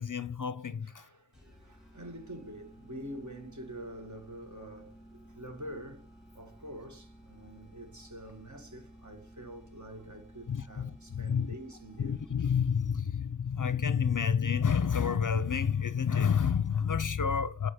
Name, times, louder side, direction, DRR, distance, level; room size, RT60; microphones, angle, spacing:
voice 1, 0.0-1.1 10.5-11.5 12.0-17.7, left 7 dB, 50° left, 0.5 m, -29 dB
voice 2, 0.8-6.1 6.3-12.2, right 1 dB, 45° right, 1.9 m, -46 dB
sound 1, 1.3-12.8, right 1 dB, ahead, 3.2 m, -54 dB
8.7 x 4.8 x 4.9 m
wide cardioid pair, 55°, 42 cm